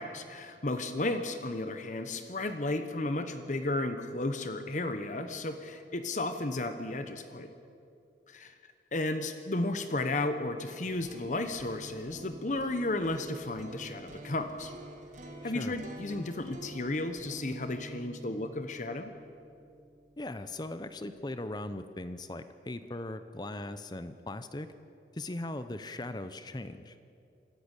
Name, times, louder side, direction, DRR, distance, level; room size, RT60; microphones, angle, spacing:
voice 1, 0.0-7.5 8.3-8.5 8.9-14.7 15.4-19.1, left 2 dB, 45° left, 8 dB, 1.0 m, -33 dB
sound 1, 10.9-20.8, right 1 dB, 45° right, 2.3 m, -48 dB
voice 2, 15.4-15.7 20.2-24.7 25.1-27.0, left 2 dB, 25° left, 11 dB, 0.6 m, -39 dB
25.5 x 14.0 x 8.2 m, 2.6 s
head